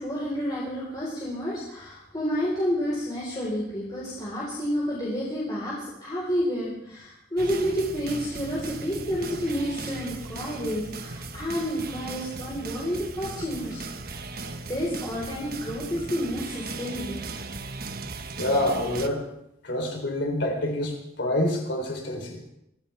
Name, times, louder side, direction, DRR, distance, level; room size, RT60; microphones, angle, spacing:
voice 1, 0.0-14.2 14.7-17.2, equal, 25° left, -6 dB, 4.4 m, -30 dB
sound 1, 7.4-19.1, right 3 dB, 50° right, 1.2 m, -37 dB
voice 2, 18.4-19.2 19.6-22.4, left 1 dB, 65° left, 3 dB, 3.6 m, -27 dB
24.5 x 15.0 x 3.5 m, 0.81 s
head